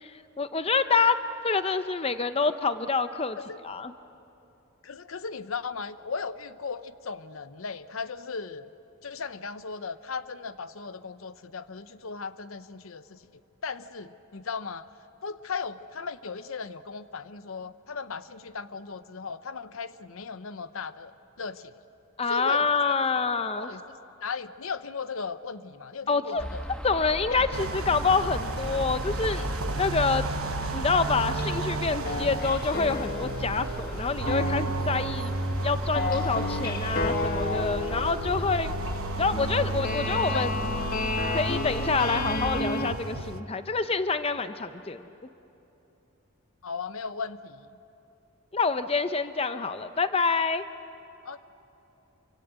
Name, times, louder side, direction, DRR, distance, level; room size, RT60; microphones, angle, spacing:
voice 1, 0.0-1.2 1.4-3.4 3.6-3.9 22.2-23.7 26.1-26.4 26.8-30.2 30.7-35.3 35.6-38.7 39.1-40.6 41.3-45.1 48.5-50.6, left 4 dB, 25° left, 10 dB, 0.6 m, -27 dB
voice 2, 4.8-8.7 9.0-13.2 13.6-14.9 15.2-21.1 21.4-21.7 22.3-23.0 23.6-26.6 27.3-27.4 37.1-38.3 40.3-40.5 46.6-47.7 51.2-51.4, left 5 dB, 70° left, 13 dB, 0.7 m, -37 dB
sound 1, 26.4-42.0, equal, 5° left, 1.5 m, -38 dB
sound 2, 27.5-43.4, right 2 dB, 75° right, 1.0 m, -33 dB
sound 3, 31.1-31.8 32.0-42.9, left 2 dB, 45° left, 1.3 m, -33 dB
27.5 x 25.0 x 8.1 m, 2.9 s
head